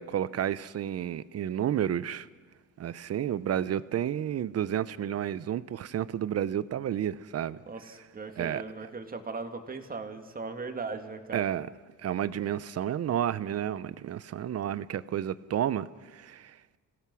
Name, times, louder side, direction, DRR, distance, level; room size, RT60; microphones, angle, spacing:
voice 1, 0.0-2.3 2.8-7.6 8.4-8.6 11.3-11.7 12.0-16.8, right 10 dB, 45° right, 0.8 m, -31 dB
voice 2, 7.7-11.5, right 4 dB, 25° right, 2.3 m, -38 dB
28.0 x 17.5 x 6.3 m
cardioid pair, 120°, 34 cm